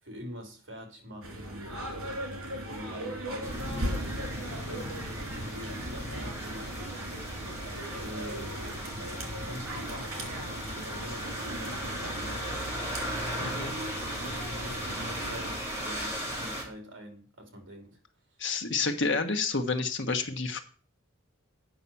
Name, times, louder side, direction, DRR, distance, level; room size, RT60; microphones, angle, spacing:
voice 1, 0.0-5.1 5.3-7.0 8.0-8.8 9.4-12.7 13.3-18.0, equal, 60° right, 3.2 m, -45 dB
sound 1, 1.2-15.6, right 1 dB, 85° right, 3.2 m, -39 dB
sound 2, 3.4-16.6, equal, 10° right, 3.1 m, -37 dB
voice 2, 13.4-13.7 18.4-20.6, left 4 dB, 55° left, 1.3 m, -29 dB
8.9 x 5.9 x 7.0 m
head